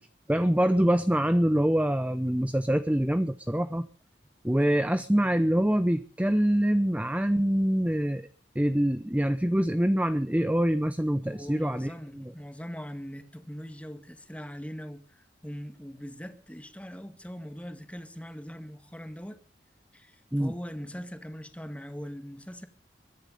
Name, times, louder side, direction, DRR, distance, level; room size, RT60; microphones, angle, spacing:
voice 1, 0.3-3.9 4.4-8.3 8.6-12.3 20.3-20.5, equal, 10° right, 0.7 m, -25 dB
voice 2, 11.2-19.4 19.9-22.7, equal, 5° left, 1.9 m, -41 dB
23.0 x 10.5 x 5.4 m
head